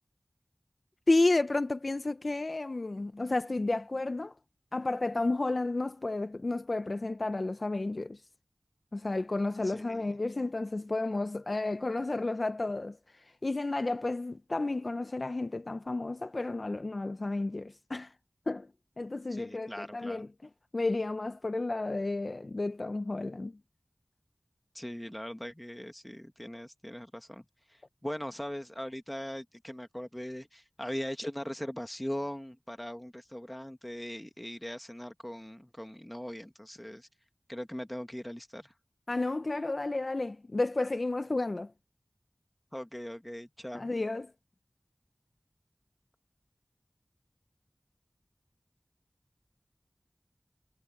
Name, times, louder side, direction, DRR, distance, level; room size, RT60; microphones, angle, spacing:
voice 1, 1.1-4.3 4.7-8.2 8.9-13.0 13.4-18.1 18.5-18.7 19.0-20.3 20.7-23.5 39.1-41.7 43.7-44.3, left 2 dB, 65° left, 0.6 m, -31 dB
voice 2, 9.6-10.2 19.3-20.3 24.7-27.4 27.7-37.1 37.5-38.7 42.7-43.9, equal, 10° left, 1.6 m, -40 dB
wide cardioid pair, 45°, 0 cm